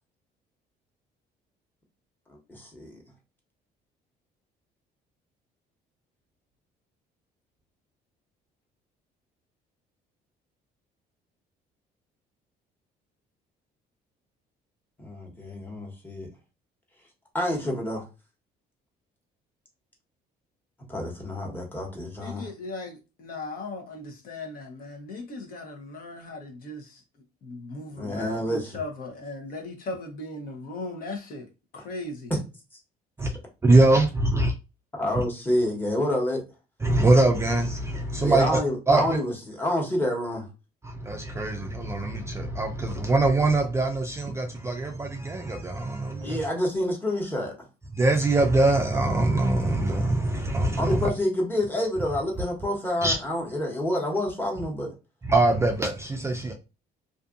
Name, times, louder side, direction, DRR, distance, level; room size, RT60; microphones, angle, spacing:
voice 1, 2.3-3.0 15.0-16.3 17.3-18.0 20.9-22.5 28.0-28.7 31.8-31.9 35.0-36.4 38.2-40.5 46.2-47.5 50.8-54.9, left 1 dB, 10° left, 1.1 m, -28 dB
voice 2, 22.2-27.0 27.4-31.5 31.7-32.3, left 2 dB, 55° left, 0.9 m, -37 dB
voice 3, 33.6-34.5 36.8-38.5 38.9-39.0 40.8-46.4 48.0-51.1 53.0-53.2 55.3-56.5, right 2 dB, 15° right, 0.4 m, -23 dB
2.6 x 2.5 x 2.4 m
cardioid pair, 110°, 17 cm